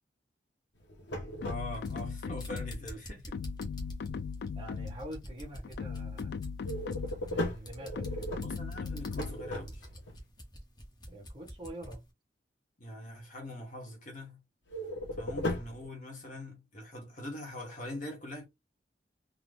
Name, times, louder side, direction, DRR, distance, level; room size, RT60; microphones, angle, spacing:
sound 1, 0.8-2.1 6.6-10.2 14.7-15.9, left 1 dB, 85° left, 1.2 m, -37 dB
sound 2, 1.4-2.9 3.3-5.1 5.6-7.3 8.0-9.5, left 5 dB, 65° left, 0.3 m, -38 dB
voice 1, 1.4-3.3 8.4-9.9 12.8-14.4 15.2-18.5, left 1 dB, 45° left, 1.4 m, -43 dB
sound 3, 1.6-12.1, equal, 25° left, 1.1 m, -47 dB
voice 2, 4.5-6.3 7.0-8.3 11.1-12.0, right 1 dB, 25° right, 1.6 m, -45 dB
3.9 x 2.4 x 3.3 m
head